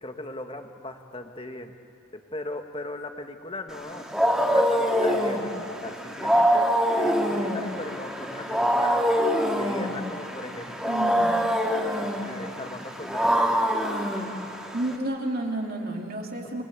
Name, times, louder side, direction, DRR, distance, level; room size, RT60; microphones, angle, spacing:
voice 1, 0.0-1.7 2.3-4.1 4.3-6.7 7.0-9.0 9.5-11.3 12.0-13.6, left 1 dB, 25° left, 5 dB, 1.7 m, -38 dB
Wild animals, 3.7-15.0, equal, ahead, 2.7 m, -25 dB
voice 2, 10.8-11.4 14.7-16.6, right 1 dB, 50° right, 1 dB, 2.7 m, -30 dB
29.0 x 23.5 x 8.4 m, 2.6 s
head